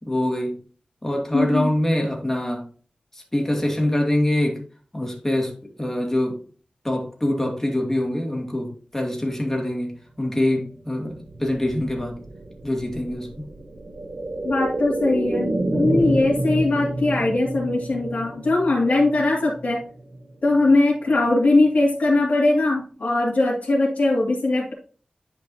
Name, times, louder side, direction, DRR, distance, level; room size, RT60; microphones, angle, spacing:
voice 1, 0.0-0.6 1.0-2.6 3.1-4.6 4.9-6.4 6.8-12.2 12.6-13.5, left 1 dB, 15° left, 2.5 m, -24 dB
voice 2, 1.3-1.7 14.4-19.8 20.4-24.7, left 2 dB, 70° left, 2.6 m, -20 dB
sound 1, 11.0-20.8 21.1-21.2, right 2 dB, 65° right, 1.3 m, -29 dB
10.5 x 5.2 x 2.9 m
wide cardioid pair, 95°, 3 cm